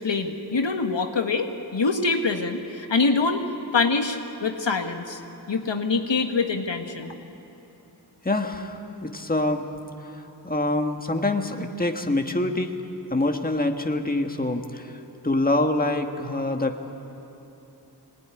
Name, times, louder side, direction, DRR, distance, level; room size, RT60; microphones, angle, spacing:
voice 1, 0.0-3.4 3.7-5.2 5.5-7.1, left 4 dB, 90° left, 4 dB, 1.6 m, -25 dB
voice 2, 8.2-9.7 10.0-12.7 13.1-16.8, left 2 dB, 20° left, 4 dB, 1.6 m, -25 dB
24.5 x 19.0 x 9.9 m, 3.0 s
wide cardioid pair, 55°, 42 cm